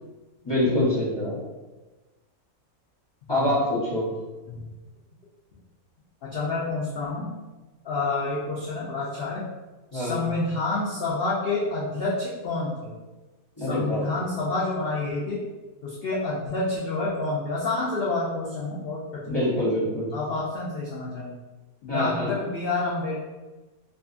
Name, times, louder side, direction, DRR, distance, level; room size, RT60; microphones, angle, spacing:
voice 1, 0.4-1.4 3.3-4.1 9.9-10.2 13.6-14.0 19.3-20.1 21.9-22.3, left 1 dB, 25° left, -11 dB, 0.5 m, -25 dB
voice 2, 6.2-7.3 7.8-9.4 9.9-12.9 13.6-15.4 15.8-19.6 20.1-21.4 21.8-23.1, left 3 dB, 90° left, -6 dB, 0.5 m, -28 dB
2.6 x 2.4 x 2.4 m, 1.2 s
omnidirectional pair, 1.6 m